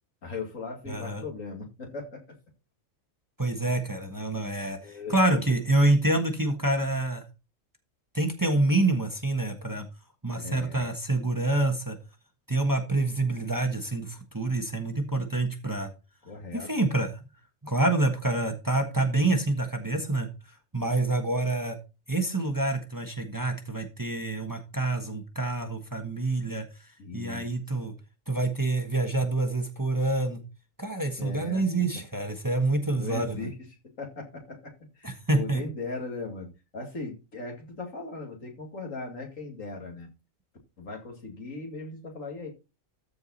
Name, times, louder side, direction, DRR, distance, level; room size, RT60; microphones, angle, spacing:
voice 1, 0.2-2.4 4.8-5.4 10.3-10.9 16.2-16.7 27.0-27.5 31.2-31.6 32.9-33.5 34.0-40.1 40.8-42.5, left 3 dB, 80° left, 1 dB, 2.8 m, -38 dB
voice 2, 0.9-1.2 3.4-7.2 8.1-9.9 10.2-12.0 12.5-15.9 16.5-17.3 17.6-20.3 20.7-21.8 22.1-27.9 28.3-30.4 30.8-33.5 35.0-35.6, right 2 dB, 15° right, 5 dB, 1.2 m, -27 dB
13.5 x 4.8 x 4.1 m, 0.29 s
omnidirectional pair, 1.4 m